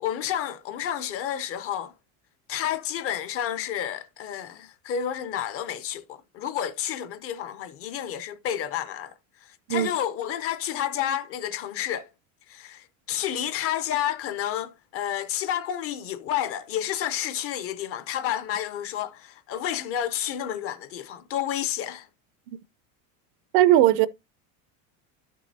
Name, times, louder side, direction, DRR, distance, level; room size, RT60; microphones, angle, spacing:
voice 1, 0.0-1.9 2.5-9.1 9.7-12.1 12.5-22.1, left 10 dB, 35° left, 0.5 m, -30 dB
voice 2, 23.5-24.1, right 13 dB, 55° right, 0.5 m, -18 dB
11.5 x 6.2 x 2.7 m
cardioid pair, 170°, 42 cm